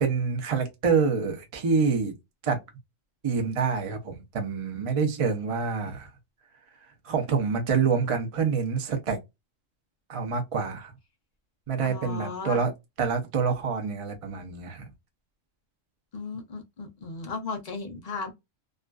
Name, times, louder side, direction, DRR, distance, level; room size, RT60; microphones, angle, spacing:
voice 1, 0.0-2.1 2.4-2.6 3.2-6.1 7.0-9.2 10.1-10.9 11.7-12.7 13.0-14.8, right 5 dB, 40° right, 0.4 m, -26 dB
voice 2, 11.8-12.6 16.1-18.3, left 4 dB, 55° left, 0.5 m, -35 dB
2.4 x 2.3 x 2.2 m
omnidirectional pair, 1.4 m